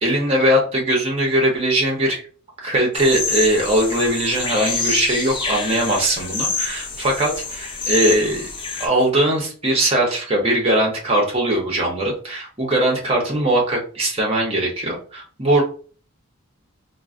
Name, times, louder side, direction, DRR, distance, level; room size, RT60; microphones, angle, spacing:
voice 1, 0.0-2.2 2.6-8.5 8.8-15.6, right 1 dB, 25° right, -1 dB, 0.7 m, -20 dB
sound 1, 2.9-8.9, left 4 dB, 25° left, 0.4 m, -27 dB
3.7 x 2.0 x 2.4 m, 0.41 s
head